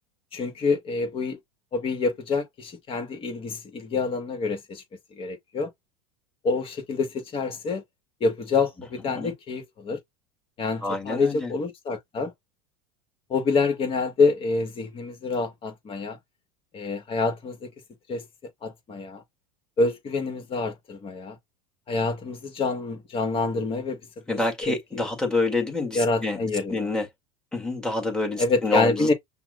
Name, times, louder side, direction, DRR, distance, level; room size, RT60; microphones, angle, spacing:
voice 1, 0.3-1.4 1.7-4.8 5.1-5.7 6.4-7.8 8.2-10.0 10.6-12.3 13.3-16.2 16.7-17.7 18.1-18.3 18.6-19.2 19.8-21.4 21.9-24.0 24.3-25.1 25.9-26.9 28.4-29.1, left 4 dB, 35° left, 1.8 m, -27 dB
voice 2, 10.8-11.5 24.3-27.1 27.5-29.1, left 2 dB, 5° left, 1.9 m, -27 dB
5.7 x 2.4 x 2.6 m
supercardioid pair, 115°, 17 cm